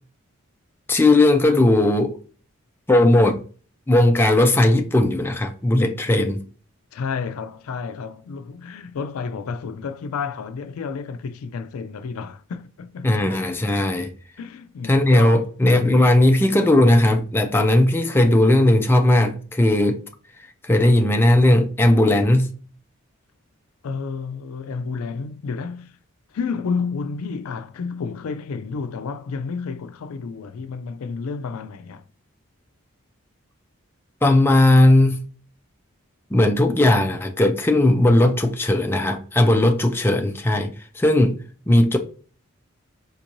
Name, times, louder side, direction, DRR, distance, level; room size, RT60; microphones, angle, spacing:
voice 1, 0.9-2.2 2.9-3.4 3.9-6.4 13.0-14.1 14.9-20.0 20.6-22.5 34.2-35.2 36.3-41.4 41.7-42.0, left 1 dB, 10° left, 0.3 m, -17 dB
voice 2, 6.9-13.1 14.4-15.4 23.8-26.0 26.3-32.0, left 5 dB, 85° left, 0.4 m, -31 dB
4.4 x 2.6 x 2.9 m
head